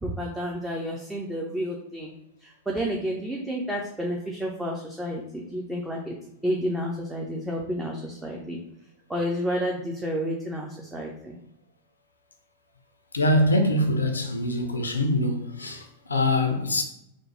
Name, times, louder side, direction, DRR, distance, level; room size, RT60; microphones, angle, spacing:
voice 1, 0.0-2.1 2.4-6.2 6.4-8.6 9.1-11.4, equal, 10° right, 0.4 m, -30 dB
voice 2, 13.1-16.8, left 1 dB, 75° left, 0.4 m, -24 dB
2.9 x 2.0 x 3.0 m
figure-of-eight pair, 90°, 0 cm